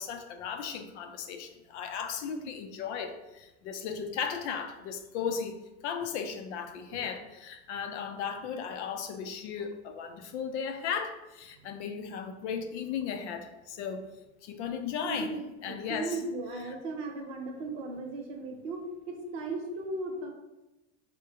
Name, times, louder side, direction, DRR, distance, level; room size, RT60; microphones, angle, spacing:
voice 1, 0.0-14.0 14.4-16.2, left 7 dB, 80° left, 7 dB, 0.5 m, -36 dB
voice 2, 15.0-20.3, right 2 dB, 65° right, 2 dB, 0.8 m, -37 dB
3.6 x 2.1 x 2.8 m, 1.0 s
supercardioid pair, 110°, 34 cm